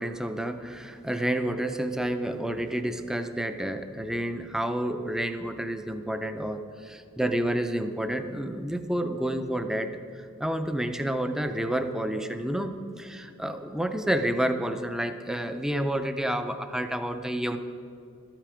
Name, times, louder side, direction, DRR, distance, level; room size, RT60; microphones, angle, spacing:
voice 1, 0.0-17.6, right 1 dB, 5° right, 8 dB, 0.4 m, -29 dB
12.5 x 9.1 x 4.9 m, 2.4 s
head